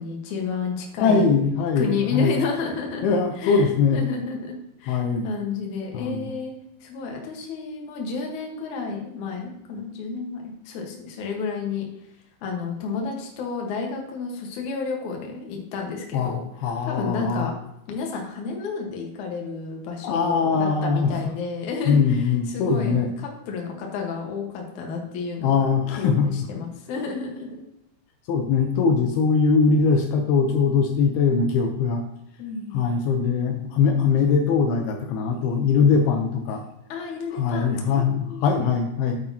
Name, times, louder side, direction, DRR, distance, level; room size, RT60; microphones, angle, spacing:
voice 1, 0.0-1.2 1.8-3.1 3.4-6.5 6.8-11.9 12.4-16.4 16.9-17.5 17.9-25.7 26.0-27.6 32.4-32.8 36.9-38.7, left 4 dB, 60° left, 1 dB, 2.4 m, -31 dB
voice 2, 1.0-2.4 3.0-4.0 4.9-5.3 5.9-6.3 16.1-17.5 20.0-21.3 21.9-23.1 25.4-26.3 28.3-32.0 32.7-36.6 37.3-39.2, left 5 dB, 80° left, 4 dB, 2.7 m, -21 dB
8.7 x 8.3 x 2.8 m, 0.83 s
omnidirectional pair, 4.6 m